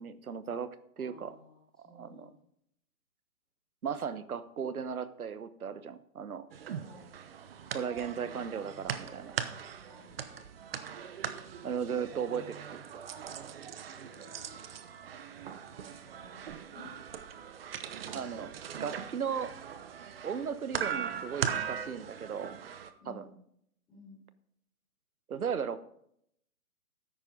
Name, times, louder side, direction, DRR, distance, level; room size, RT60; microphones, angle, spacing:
voice 1, 0.0-1.4 1.8-2.3 3.8-6.5 7.7-9.3 11.6-12.6 12.9-13.0 18.1-18.5 18.8-19.5 20.2-22.5 23.1-23.3 25.3-25.8, right 7 dB, 75° right, 14 dB, 1.2 m, -36 dB
voice 2, 1.0-1.6 1.8-2.3 6.8-7.1 9.8-10.1 13.9-14.9 16.1-16.9 23.0-23.3 23.9-24.2, left 2 dB, ahead, -9 dB, 0.5 m, -55 dB
sound 1, 6.5-22.9, right 8 dB, 40° right, 0.9 m, -40 dB
13.0 x 10.0 x 3.9 m, 0.72 s
hypercardioid pair, 145°, 44 cm